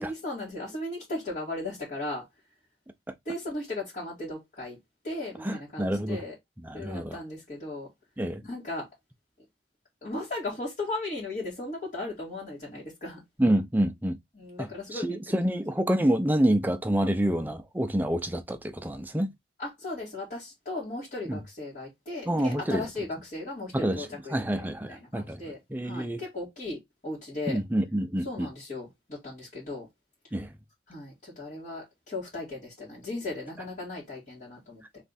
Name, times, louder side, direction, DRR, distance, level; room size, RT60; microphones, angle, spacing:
voice 1, 0.0-2.2 3.3-4.8 5.0-6.3 6.7-7.9 8.4-8.9 10.0-13.2 14.4-15.4 19.6-26.8 27.0-27.6 28.2-29.9 30.9-34.8, left 2 dB, 45° left, 2.4 m, -36 dB
voice 2, 5.4-6.2 6.6-7.2 8.2-8.4 13.4-14.2 14.6-19.3 21.3-21.4 22.3-22.9 23.7-25.4 25.7-26.2 27.5-28.5 30.3-30.5, right 1 dB, 10° right, 0.5 m, -27 dB
3.5 x 3.3 x 4.1 m
head